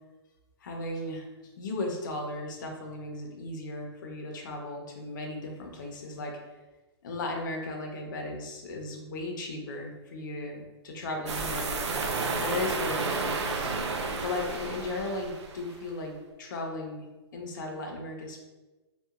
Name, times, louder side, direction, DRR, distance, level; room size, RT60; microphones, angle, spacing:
voice 1, 0.6-1.3 1.6-6.4 7.0-11.9 12.4-13.7 14.1-17.0 17.3-18.4, left 2 dB, 45° left, 1 dB, 0.5 m, -36 dB
sound 1, 11.3-15.7, right 4 dB, 80° right, 0.4 m, -31 dB
2.8 x 2.2 x 2.4 m, 1.2 s
hypercardioid pair, 165°, 14 cm